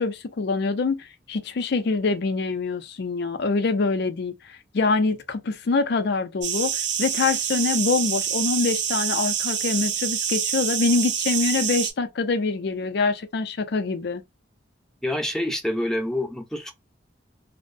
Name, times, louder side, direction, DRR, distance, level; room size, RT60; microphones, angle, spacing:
voice 1, 0.0-14.2, left 4 dB, 65° left, 0.5 m, -25 dB
sound 1, 6.4-11.9, right 8 dB, 70° right, 0.6 m, -26 dB
voice 2, 15.0-16.7, left 1 dB, 5° left, 0.5 m, -27 dB
2.6 x 2.1 x 2.5 m
head